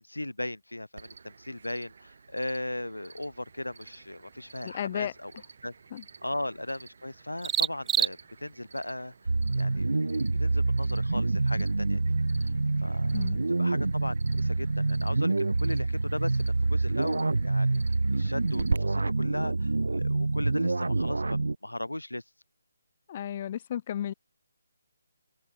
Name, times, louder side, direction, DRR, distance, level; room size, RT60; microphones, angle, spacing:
voice 1, 0.0-5.3 5.6-5.7 6.2-9.1 9.5-12.0 12.4-12.5 12.8-13.3 13.6-17.8 18.1-22.2, left 1 dB, 85° left, 5.2 m, -37 dB
Cricket, 1.0-18.8, right 5 dB, 50° right, 4.7 m, -45 dB
sound 1, 3.4-21.1, right 9 dB, 10° right, 2.0 m, -41 dB
voice 2, 4.6-5.1 5.9-6.0 13.1-13.4 23.1-24.1, left 10 dB, 30° left, 1.5 m, -33 dB
sound 2, 9.3-21.6, right 3 dB, 70° right, 1.1 m, -27 dB
figure-of-eight pair, 150°, 0 cm